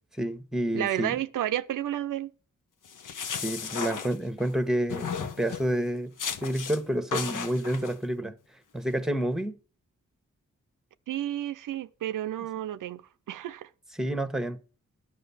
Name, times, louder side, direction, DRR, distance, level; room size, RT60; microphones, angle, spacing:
voice 1, 0.2-1.1 3.3-6.1 6.4-8.3 8.7-9.6 14.0-14.6, right 1 dB, ahead, 1.2 m, -29 dB
voice 2, 0.7-2.3 11.1-13.0 13.3-13.7, right 12 dB, 85° right, 0.5 m, -31 dB
sound 1, 2.9-4.5 4.9-5.7 6.2-6.8 7.1-7.9, left 7 dB, 80° left, 1.0 m, -35 dB
11.0 x 5.4 x 7.0 m
cardioid pair, 55°, 31 cm